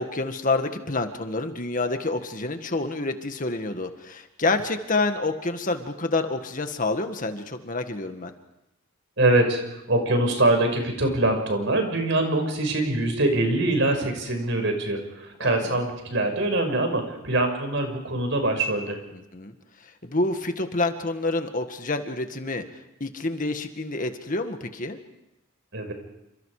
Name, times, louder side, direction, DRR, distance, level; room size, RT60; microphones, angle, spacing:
voice 1, 0.0-8.3 15.4-15.8 19.1-19.5 19.8-22.6 23.0-25.0, left 2 dB, 40° left, 7 dB, 1.9 m, -28 dB
voice 2, 9.2-19.0 25.7-25.9, right 2 dB, 60° right, 5 dB, 6.2 m, -24 dB
29.0 x 27.0 x 5.0 m, 0.90 s
head